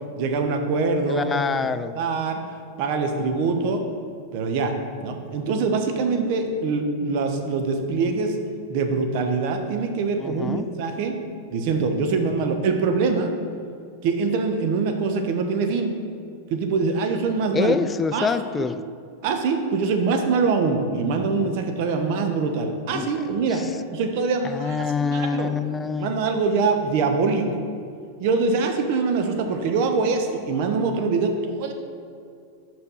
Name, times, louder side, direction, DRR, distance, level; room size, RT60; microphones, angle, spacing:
voice 1, 0.2-1.4 1.9-2.4 2.8-3.8 4.3-4.7 5.0-8.4 8.7-11.2 11.5-13.3 14.0-15.9 16.5-17.8 18.1-18.3 18.6-18.7 19.2-23.6 23.9-25.5 26.0-27.6 28.2-31.7, right 4 dB, 60° right, 5 dB, 0.9 m, -24 dB
voice 2, 1.1-1.9 10.2-10.7 17.5-18.8 22.9-23.7 24.4-26.1, left 5 dB, 20° left, 12 dB, 0.3 m, -26 dB
5.8 x 5.3 x 5.5 m, 2.3 s
hypercardioid pair, 115°, 0 cm